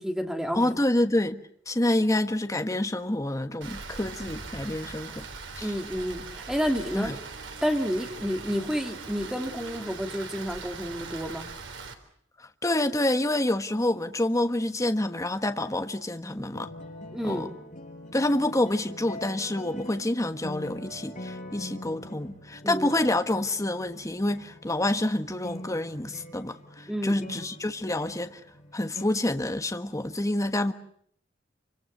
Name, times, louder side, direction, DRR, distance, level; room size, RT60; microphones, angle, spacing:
voice 1, 0.0-0.7 5.6-7.2 7.6-11.5 17.1-17.6 22.6-22.9 26.9-27.3, equal, 5° right, 2.7 m, -30 dB
voice 2, 0.5-1.4 1.7-5.2 5.6-5.7 6.9-7.1 12.6-16.7 17.2-17.5 18.1-28.4 28.7-30.7, left 1 dB, 15° left, 1.3 m, -27 dB
Rain, 3.6-11.9, right 4 dB, 80° right, 3.8 m, -41 dB
sound 1, 16.5-29.1, left 1 dB, 45° left, 6.7 m, -43 dB
28.0 x 25.5 x 6.6 m
head